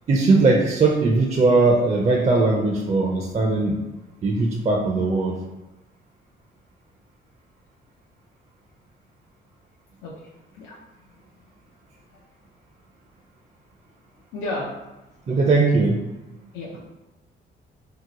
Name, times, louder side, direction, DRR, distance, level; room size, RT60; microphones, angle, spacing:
voice 1, 0.1-3.8 4.2-5.4 15.3-16.1, right 3 dB, 35° right, 0 dB, 0.5 m, -19 dB
voice 2, 10.0-10.8 12.1-12.2 14.3-14.8 16.5-16.8, left 2 dB, 90° left, -6 dB, 0.6 m, -33 dB
2.8 x 2.1 x 3.8 m, 1.1 s
cardioid pair, 90°, 20 cm